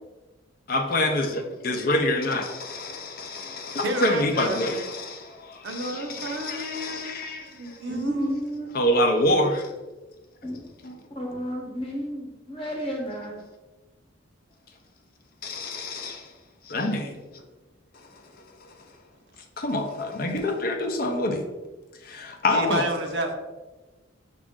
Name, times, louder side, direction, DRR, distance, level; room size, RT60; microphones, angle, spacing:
voice 1, 0.7-7.8 8.7-9.7 10.8-10.9 15.4-16.3 16.6-17.2 17.9-18.1 18.6-18.7 19.6-21.4 22.0-22.9, left 1 dB, 50° left, 3 dB, 0.5 m, -26 dB
voice 2, 3.8-4.6 5.6-8.3 22.5-23.3, right 1 dB, 65° right, 4 dB, 0.6 m, -31 dB
voice 3, 7.9-8.7 10.4-10.7 11.1-13.4, equal, 30° left, -1 dB, 1.0 m, -31 dB
6.0 x 2.5 x 3.6 m, 1.2 s
head